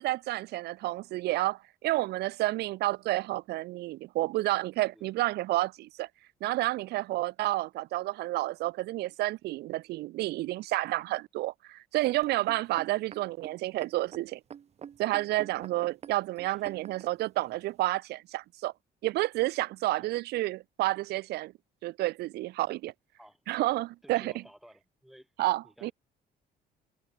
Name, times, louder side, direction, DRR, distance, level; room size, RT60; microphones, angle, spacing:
voice 1, 0.0-6.1 6.4-14.4 15.0-18.7 19.0-21.5 21.8-22.9 23.5-24.3 25.4-25.9, right 17 dB, 75° right, 0.7 m, -30 dB
sound 1, 12.2-17.1 17.8-17.9, right 8 dB, 40° right, 0.9 m, -46 dB
voice 2, 19.8-20.1 23.2-23.4 24.0-25.3 25.6-25.9, equal, ahead, 3.6 m, -55 dB
cardioid pair, 110°, 17 cm